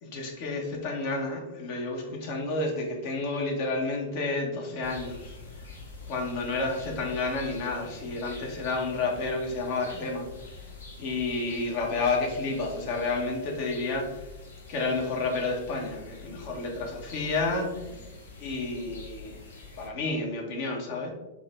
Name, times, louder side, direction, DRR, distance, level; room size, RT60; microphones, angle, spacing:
voice 1, 0.0-5.4 6.1-10.3 11.0-14.3 14.7-17.9 18.4-19.4 19.8-21.1, left 3 dB, 45° left, 1 dB, 1.1 m, -30 dB
sound 1, 4.8-19.9, left 3 dB, 65° left, 1.0 m, -46 dB
5.1 x 2.9 x 3.4 m, 1.1 s
figure-of-eight pair, 100°, 0 cm